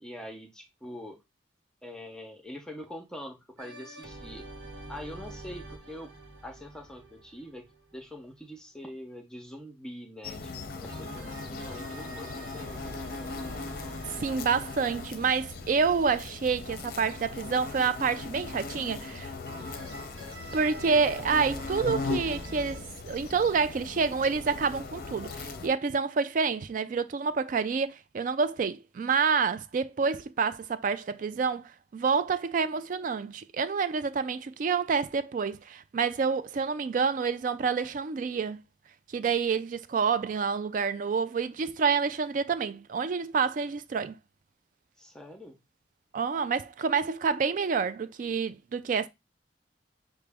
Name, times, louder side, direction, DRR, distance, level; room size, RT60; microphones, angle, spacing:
voice 1, 0.0-1.2 1.8-4.4 4.9-6.1 6.4-10.5 10.8-12.7 45.0-45.6, left 1 dB, 5° left, 0.6 m, -44 dB
sound 1, 3.6-8.3 10.9-16.7 19.5-22.8, right 1 dB, 70° right, 0.9 m, -45 dB
sound 2, 10.2-25.7, left 3 dB, 50° left, 0.6 m, -39 dB
voice 2, 14.2-19.3 20.5-38.6 39.1-44.1 46.1-49.1, right 5 dB, 45° right, 0.3 m, -28 dB
5.9 x 2.1 x 3.4 m
head